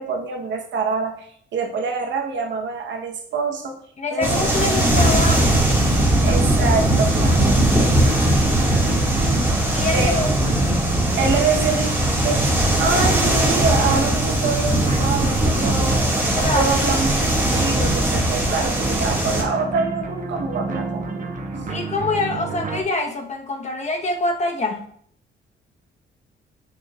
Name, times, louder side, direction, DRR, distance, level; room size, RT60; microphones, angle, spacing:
voice 1, 0.0-3.8 4.1-4.6 4.8-5.1 6.2-7.6 9.9-10.1 11.2-11.9 12.2-12.4 12.8-16.0 16.4-17.3 17.5-21.3, right 4 dB, 65° right, 3 dB, 1.1 m, -25 dB
voice 2, 4.0-5.6 9.7-10.6 16.4-16.7 21.7-24.8, left 2 dB, 35° left, 3 dB, 1.1 m, -25 dB
sound 1, 4.2-19.4, right 1 dB, 10° right, 1.9 m, -19 dB
sound 2, 4.3-22.8, right 4 dB, 40° right, 1.1 m, -30 dB
7.0 x 6.4 x 2.4 m, 0.64 s
cardioid pair, 90°, 20 cm